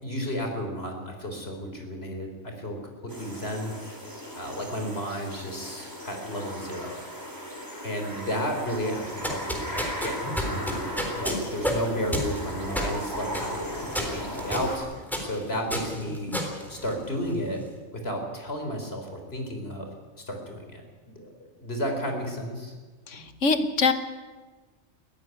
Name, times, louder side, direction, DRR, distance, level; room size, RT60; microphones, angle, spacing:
voice 1, 0.0-3.9 4.4-7.0 7.3-7.5 7.8-14.9 15.2-17.6 17.9-19.9 20.2-20.8 21.1-21.3 21.6-22.7 23.1-23.2, equal, 55° left, 4 dB, 4.3 m, -33 dB
sound 1, 3.1-14.8, equal, 15° right, 4.1 m, -37 dB
sound 2, 9.0-17.4, equal, ahead, 3.7 m, -32 dB
voice 2, 23.1-23.9, left 4 dB, 85° left, 9 dB, 1.6 m, -24 dB
20.5 x 15.0 x 9.6 m, 1.3 s
omnidirectional pair, 1.2 m